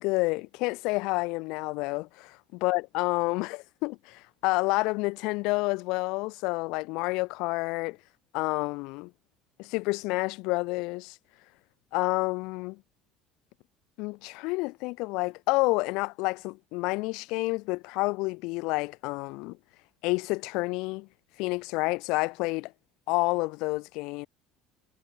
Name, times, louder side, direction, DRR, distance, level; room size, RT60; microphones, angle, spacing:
voice 1, 0.0-8.0 8.3-9.1 9.6-11.2 11.9-12.8 14.0-19.6 20.0-21.1 21.4-22.7 23.1-24.3, left 25 dB, 65° left, 2.3 m, -29 dB
cardioid pair, 170°, 0 cm